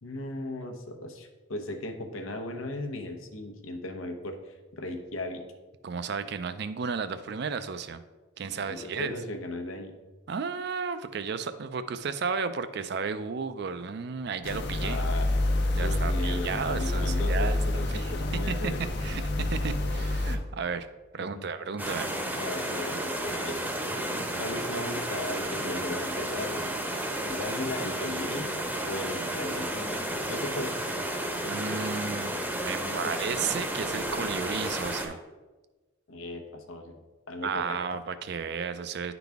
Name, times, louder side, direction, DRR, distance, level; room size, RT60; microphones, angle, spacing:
voice 1, 0.0-5.4 8.5-9.9 14.8-15.3 15.8-18.8 21.3-21.5 22.4-23.6 24.4-26.8 27.2-28.5 28.8-30.9 32.8-33.3 36.1-37.0 37.3-37.8, left 1 dB, 90° left, 5 dB, 0.9 m, -37 dB
voice 2, 5.8-8.0 8.4-9.1 10.3-15.0 15.8-17.6 17.9-20.9 21.1-22.1 31.5-32.4 32.6-35.2 37.4-39.1, right 5 dB, 55° right, 11 dB, 0.4 m, -33 dB
sound 1, 14.4-20.4, left 1 dB, 55° left, 0.7 m, -28 dB
sound 2, 21.8-35.1, right 1 dB, 10° right, 0.7 m, -32 dB
10.0 x 4.0 x 3.4 m, 1.2 s
head